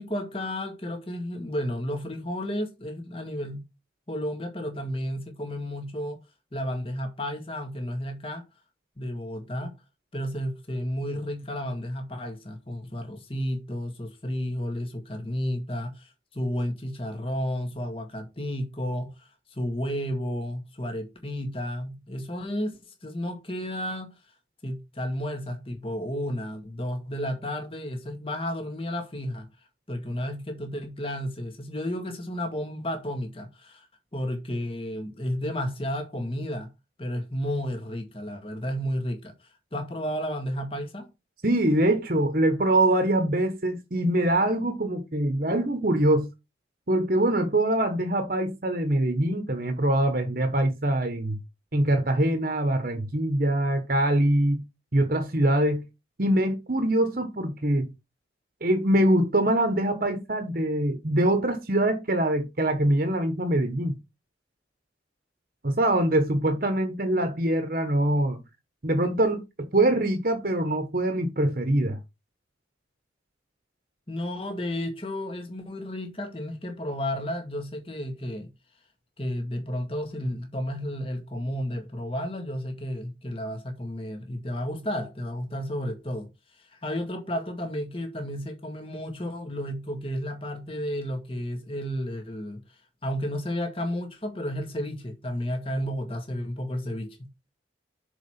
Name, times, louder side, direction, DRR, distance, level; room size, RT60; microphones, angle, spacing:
voice 1, 0.0-3.7 4.1-6.2 6.5-8.4 9.0-9.7 10.1-24.1 24.6-29.5 29.9-33.9 34.1-36.7 37.0-39.3 39.7-41.1 74.1-78.5 79.2-86.3 86.6-92.6 93.0-97.3, equal, 30° left, 1.9 m, -32 dB
voice 2, 41.4-46.3 46.9-51.4 51.7-54.6 54.9-55.8 56.2-57.9 58.6-64.0 65.6-68.4 68.8-69.4 69.7-72.0, right 1 dB, 50° right, 1.2 m, -24 dB
6.7 x 4.8 x 5.9 m
head